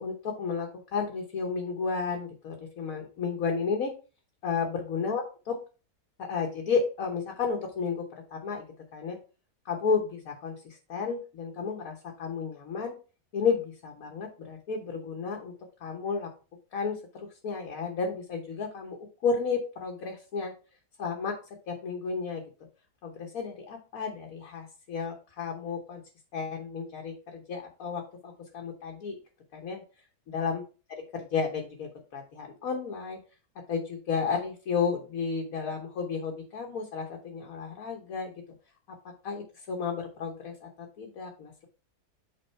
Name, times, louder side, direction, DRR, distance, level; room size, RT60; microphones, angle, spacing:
voice 1, 0.0-3.9 4.4-5.6 6.2-8.7 8.9-9.2 9.6-13.0 13.3-15.5 15.8-16.3 16.7-20.5 21.0-22.4 23.0-26.0 26.3-29.2 29.5-29.8 30.3-30.6 30.9-33.2 33.7-38.3 39.2-41.7, left 5 dB, 60° left, 1 dB, 1.4 m, -32 dB
8.5 x 3.8 x 4.4 m, 0.34 s
omnidirectional pair, 1.8 m